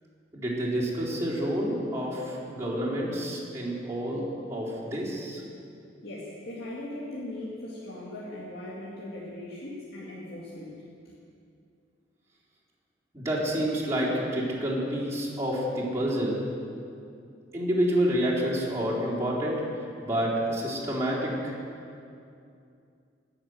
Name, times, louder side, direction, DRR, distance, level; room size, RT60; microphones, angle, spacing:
voice 1, 0.3-5.4 13.1-16.4 17.5-19.6 20.0-21.5, equal, 15° right, -7 dB, 4.0 m, -28 dB
voice 2, 6.0-11.1, left 1 dB, 60° left, -7 dB, 2.4 m, -39 dB
20.5 x 7.3 x 7.9 m, 2.5 s
head